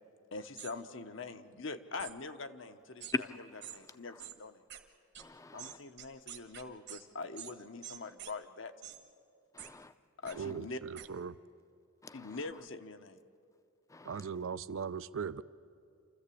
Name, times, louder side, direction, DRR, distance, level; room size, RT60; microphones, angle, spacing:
voice 1, 0.3-3.1 3.7-4.6 5.5-8.7 10.2-10.8 12.1-13.2, left 3 dB, 65° left, 1.0 m, -43 dB
sound 1, 0.6-0.7 2.0-2.1 3.0-3.2 3.6-3.8 4.2-4.4 4.7-4.8 5.2-5.3 5.6-7.0 7.4-7.5 7.8-8.3 8.8-9.0 9.6-9.7 10.3-10.4 11.0-11.1, right 11 dB, 55° right, 1.3 m, -46 dB
voice 2, 3.1-3.8 4.0-4.3 5.2-5.8 9.5-9.9 10.2-10.5 12.0-12.5 13.9-14.4, left 3 dB, 15° left, 0.6 m, -42 dB
voice 3, 10.4-11.3 14.1-15.4, right 6 dB, 75° right, 0.5 m, -39 dB
27.0 x 14.0 x 8.5 m
head